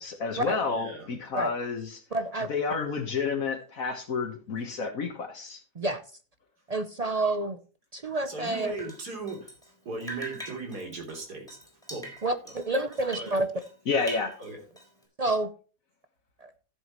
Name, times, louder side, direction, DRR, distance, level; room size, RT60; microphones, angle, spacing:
voice 1, 0.0-2.0 2.5-5.6 13.9-14.3, left 5 dB, 60° left, 1.6 m, -30 dB
voice 2, 0.7-1.2 8.3-9.5 9.9-11.6 11.9-12.1 12.5-13.4 14.4-14.6, right 3 dB, 75° right, 3.8 m, -38 dB
voice 3, 2.1-2.5 5.8-6.0 6.7-7.6 7.9-8.8 12.2-13.5 15.2-15.5 16.4-16.5, right 2 dB, 55° right, 0.4 m, -28 dB
Drip, 8.6-9.7 10.0-13.7 14.0-15.0, right 1 dB, ahead, 4.4 m, -43 dB
14.0 x 7.8 x 3.0 m
omnidirectional pair, 1.7 m